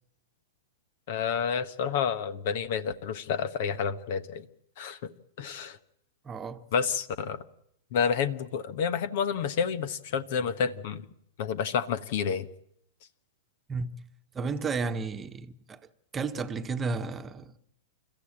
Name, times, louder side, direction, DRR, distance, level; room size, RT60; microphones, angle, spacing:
voice 1, 1.1-4.5 4.8-5.8 6.7-7.4 7.9-11.1 11.4-12.5, left 7 dB, 55° left, 1.3 m, -29 dB
voice 2, 6.2-6.6 13.7-13.9 14.3-15.8 16.1-17.5, right 4 dB, 20° right, 1.3 m, -32 dB
30.0 x 14.0 x 8.8 m
hypercardioid pair, 110°, 0 cm